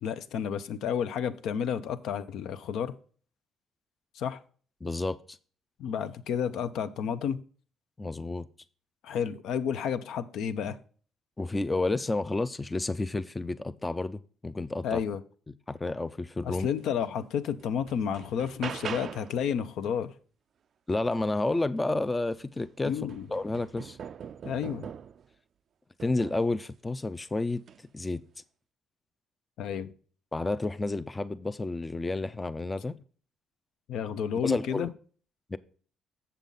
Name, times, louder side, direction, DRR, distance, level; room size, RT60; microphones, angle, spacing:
voice 1, 0.0-3.0 4.2-4.4 5.8-7.4 9.0-10.8 14.8-15.2 16.4-20.1 22.8-23.3 24.4-24.9 29.6-29.9 33.9-34.9, left 8 dB, 75° left, 0.6 m, -31 dB
voice 2, 4.8-5.4 8.0-8.5 11.4-15.0 15.7-16.7 20.9-22.9 23.3-24.0 26.0-27.6 27.9-28.2 30.3-33.0 34.4-34.9 35.5-35.6, left 2 dB, 15° left, 0.4 m, -30 dB
sound 1, 17.0-17.1 17.6-19.4 21.8-21.9 22.3-25.3 26.0-26.5 27.6-27.8, right 7 dB, 50° right, 0.3 m, -42 dB
7.3 x 6.9 x 3.8 m
cardioid pair, 115°, 0 cm